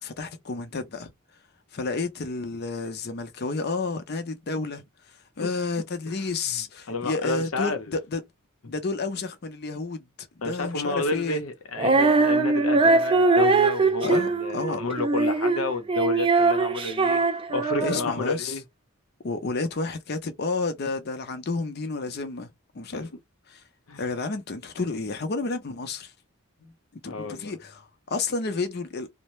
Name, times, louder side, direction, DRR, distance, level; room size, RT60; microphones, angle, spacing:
voice 1, 0.0-1.1 1.7-8.2 8.7-11.4 14.0-14.8 17.8-18.6 19.2-23.1 23.5-23.6 24.0-26.1 27.0-29.1, left 3 dB, 50° left, 0.6 m, -31 dB
voice 2, 6.9-7.8 8.6-8.7 10.4-17.2 17.5-18.6 22.9-23.0 23.9-24.0 26.6-26.7 27.1-27.5, left 3 dB, 90° left, 0.7 m, -31 dB
Female singing, 11.8-18.2, right 3 dB, 25° right, 0.4 m, -22 dB
2.6 x 2.1 x 3.0 m
head